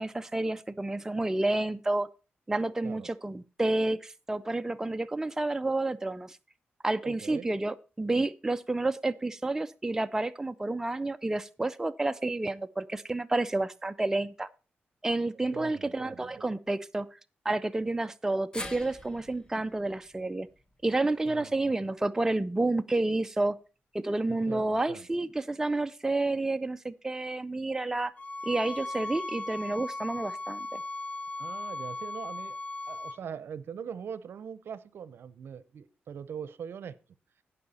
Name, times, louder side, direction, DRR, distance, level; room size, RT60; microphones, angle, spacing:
voice 1, 0.0-2.1 2.5-6.4 6.8-14.5 15.0-17.1 17.4-20.5 20.8-23.6 23.9-28.1 28.4-30.8, right 2 dB, 10° right, 10 dB, 0.4 m, -30 dB
voice 2, 7.0-7.5 15.5-16.5 21.2-21.9 24.3-25.1 31.4-32.6 32.9-37.0, right 7 dB, 75° right, 17 dB, 0.7 m, -42 dB
sound 1, 18.5-22.8 23.1-23.2 24.4-24.5, left 1 dB, 20° left, 1.5 m, -46 dB
sound 2, 28.2-33.2, left 2 dB, 35° left, 0.6 m, -37 dB
16.5 x 5.5 x 4.2 m, 0.33 s
wide cardioid pair, 110°, 4 cm